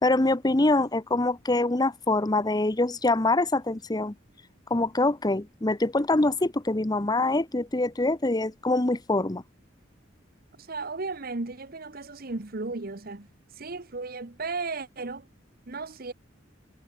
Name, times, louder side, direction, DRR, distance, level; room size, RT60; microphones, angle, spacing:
voice 1, 0.0-4.1 4.7-9.4, left 2 dB, 20° left, 0.9 m, -24 dB
voice 2, 10.6-13.3 13.5-15.3 15.7-16.1, right 3 dB, 50° right, 1.2 m, -35 dB
head